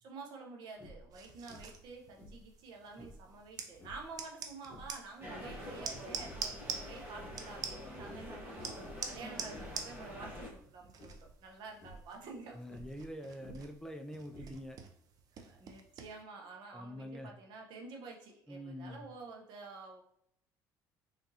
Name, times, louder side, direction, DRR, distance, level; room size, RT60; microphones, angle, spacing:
voice 1, 0.0-8.7 9.1-12.8 14.4-14.5 15.3-20.0, right 4 dB, 65° right, 2 dB, 1.0 m, -49 dB
sound 1, 0.7-1.1 1.5-1.9 2.1-3.3 3.7-4.1 4.6-5.8 6.1-6.6 7.0-7.8 8.1-8.4 8.7-9.1 9.5-9.8 10.1-10.5 11.0-11.3 11.7-12.1 12.6-13.8 14.3-14.8, equal, 30° left, 1.4 m, -53 dB
sound 2, 1.1-16.2, right 6 dB, 50° right, 0.6 m, -47 dB
sound 3, 5.2-10.5, left 1 dB, 25° right, 1.5 m, -46 dB
voice 2, 12.5-14.8 16.7-17.3 18.5-19.1, equal, 10° left, 4 dB, 0.5 m, -45 dB
3.8 x 3.5 x 2.8 m, 0.69 s
supercardioid pair, 100°, 8 cm